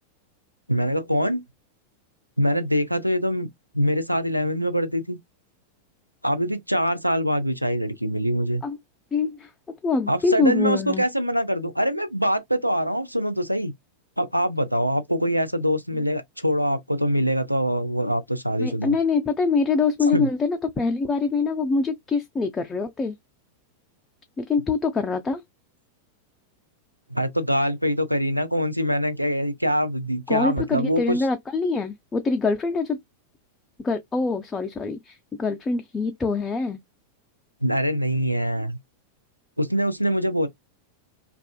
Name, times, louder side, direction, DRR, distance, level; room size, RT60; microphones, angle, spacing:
voice 1, 0.7-1.4 2.4-3.5 3.7-5.2 6.2-8.6 10.1-13.7 14.2-18.9 20.1-20.3 27.1-31.2 37.6-38.8 39.6-40.5, equal, 90° right, 0.3 m, -24 dB
voice 2, 9.1-9.5 9.8-11.0 18.6-23.1 24.4-25.4 30.3-33.0 33.8-36.8, left 4 dB, 15° left, 0.3 m, -24 dB
2.4 x 2.3 x 2.2 m
figure-of-eight pair, 90°, 0 cm